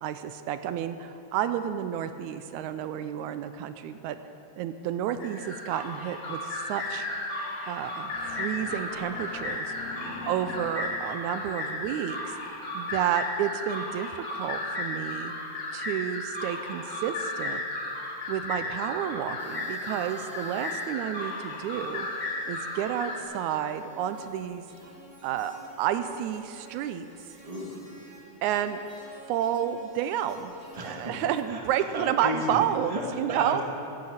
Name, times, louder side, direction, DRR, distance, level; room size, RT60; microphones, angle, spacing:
voice 1, 0.0-4.2 4.6-7.1 7.7-9.7 10.2-15.3 15.7-17.6 18.3-24.6 25.2-27.1 28.4-28.8 29.3-30.5 30.8-33.6, right 10 dB, 85° right, 10 dB, 2.0 m, -31 dB
sound 1, 5.2-23.2, left 2 dB, 55° left, 3.3 m, -34 dB
sound 2, 8.1-12.2, left 9 dB, 80° left, 1.9 m, -45 dB
voice 2, 9.8-10.5 19.9-20.3 27.4-27.9 30.7-31.1 31.4-32.6 32.9-33.0 33.3-33.6, equal, 15° right, -1 dB, 1.4 m, -35 dB
sound 3, 19.4-28.2 28.5-31.5, left 1 dB, 15° left, 4.1 m, -53 dB
14.5 x 10.5 x 8.0 m, 2.8 s
omnidirectional pair, 3.4 m